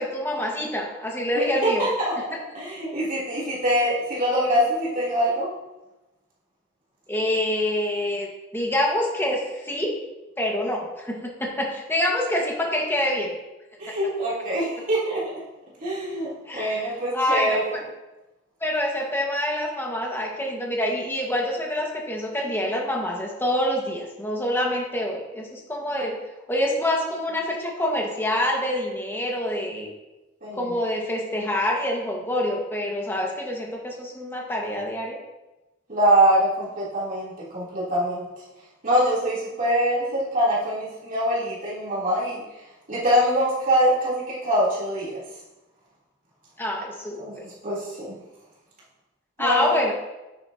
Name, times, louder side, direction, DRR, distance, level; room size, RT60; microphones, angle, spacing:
voice 1, 0.0-1.9 7.1-9.9 10.4-13.3 13.9-14.0 16.5-17.8 18.6-26.2 26.5-29.9 30.5-35.2 46.6-47.4 49.4-49.9, left 1 dB, 10° left, -1 dB, 1.6 m, -26 dB
voice 2, 1.3-2.1 2.5-5.5 13.8-15.3 15.8-17.7 30.4-30.6 35.9-38.3 38.8-42.4 42.9-45.2 47.2-48.1 49.4-49.9, equal, 45° right, -8 dB, 3.4 m, -24 dB
9.5 x 8.8 x 2.9 m, 1.0 s
head